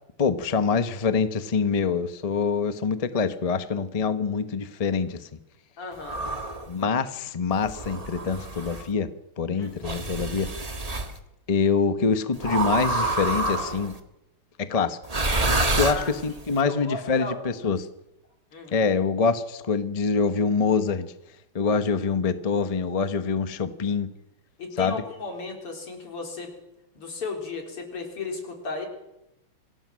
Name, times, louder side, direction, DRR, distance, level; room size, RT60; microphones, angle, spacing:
voice 1, 0.2-5.3 6.7-9.1 9.4-10.5 11.5-14.0 14.6-15.0 15.7-17.9 18.7-21.1 21.5-24.1 24.8-25.0, left 5 dB, 30° left, 11 dB, 0.7 m, -25 dB
voice 2, 5.8-6.2 9.5-9.8 15.8-16.1 16.6-17.5 18.5-18.9 24.6-26.5 26.9-28.9, left 3 dB, 85° left, 3 dB, 4.8 m, -35 dB
sound 1, 6.0-6.7 7.6-8.8 9.8-11.1 12.4-13.9 15.0-16.5, right 2 dB, 20° right, 1.5 m, -27 dB
25.5 x 17.0 x 6.4 m, 0.90 s
omnidirectional pair, 2.4 m